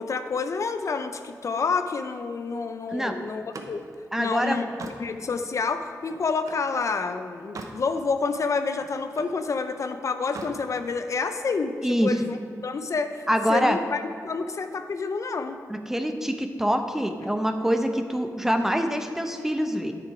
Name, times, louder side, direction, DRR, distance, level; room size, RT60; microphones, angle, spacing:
voice 1, 0.0-3.9 4.2-4.6 5.0-11.7 12.0-12.4 12.6-15.6, left 4 dB, 55° left, 8 dB, 0.5 m, -28 dB
Slam, 3.3-6.7 7.2-7.9 8.2-9.4 10.2-10.6, right 3 dB, 60° right, 0.9 m, -42 dB
voice 2, 4.1-4.6 11.8-12.1 13.3-13.8 15.7-19.9, equal, 5° right, 6 dB, 0.8 m, -25 dB
9.7 x 6.9 x 4.9 m, 2.3 s
cardioid pair, 75°, 6 cm